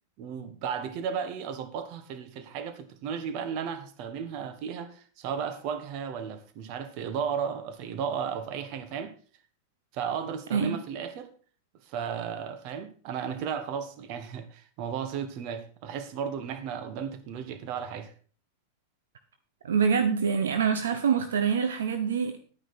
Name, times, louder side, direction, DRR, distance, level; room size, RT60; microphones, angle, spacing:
voice 1, 0.2-9.1 9.9-11.3 11.9-18.1, right 7 dB, 50° right, 1.5 m, -34 dB
voice 2, 19.6-22.4, right 6 dB, 70° right, 0.9 m, -25 dB
10.5 x 9.4 x 4.4 m
figure-of-eight pair, 95°, 0 cm